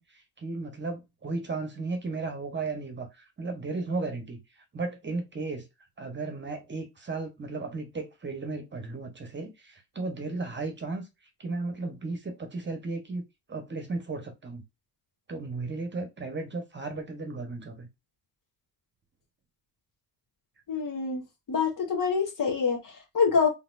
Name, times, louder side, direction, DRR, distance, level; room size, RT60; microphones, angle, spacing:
voice 1, 0.0-4.4 4.7-5.7 6.0-11.1 11.4-14.6 15.3-17.9, right 3 dB, 30° right, 1.1 m, -35 dB
voice 2, 20.7-21.2 21.5-23.5, left 5 dB, 50° left, 1.7 m, -26 dB
4.1 x 3.5 x 2.5 m
cardioid pair, 90°, 40 cm